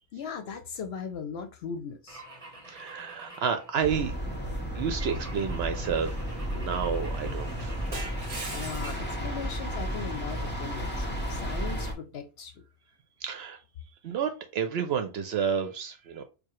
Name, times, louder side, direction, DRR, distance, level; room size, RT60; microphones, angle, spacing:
voice 1, 0.1-2.2 8.5-12.6, left 6 dB, 70° left, 0.8 m, -38 dB
Car / Engine / Glass, 2.1-4.3 5.0-9.2, right 2 dB, 35° right, 0.9 m, -44 dB
voice 2, 2.7-4.1 4.7-6.1 6.5-7.8 13.2-13.6 14.0-16.2, right 7 dB, 70° right, 0.8 m, -30 dB
sound 1, 3.8-11.9, equal, 10° left, 1.0 m, -33 dB
4.6 x 2.2 x 3.0 m
omnidirectional pair, 1.2 m